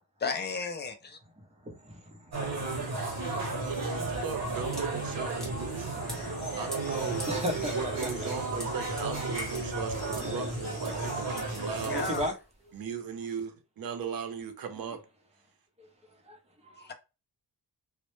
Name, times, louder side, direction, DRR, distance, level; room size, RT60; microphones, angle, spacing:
voice 1, 0.2-1.2 11.9-12.2 16.8-16.9, left 4 dB, 25° left, 0.3 m, -33 dB
voice 2, 1.6-3.6 5.8-6.6 7.3-8.1 10.2-10.8 11.9-12.3 15.8-15.9 16.3-16.4 16.6-16.9, equal, 15° right, 0.6 m, -38 dB
sound 1, 2.3-12.3, right 3 dB, 40° right, 0.9 m, -33 dB
sound 2, 2.4-12.3, left 5 dB, 65° left, 0.6 m, -49 dB
voice 3, 3.4-6.1 6.6-7.3 7.6-12.1 12.7-15.0, right 6 dB, 55° right, 0.6 m, -38 dB
sound 3, 3.9-12.7, equal, ahead, 0.9 m, -47 dB
2.0 x 2.0 x 3.0 m
wide cardioid pair, 130°, 42 cm